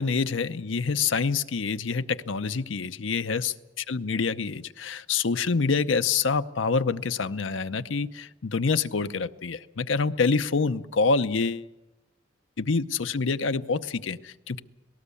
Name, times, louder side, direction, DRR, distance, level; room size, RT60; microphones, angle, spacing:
voice 1, 0.0-3.5 3.9-11.7 12.6-14.6, left 4 dB, 85° left, 10 dB, 0.7 m, -26 dB
18.5 x 18.5 x 8.4 m, 1.0 s
head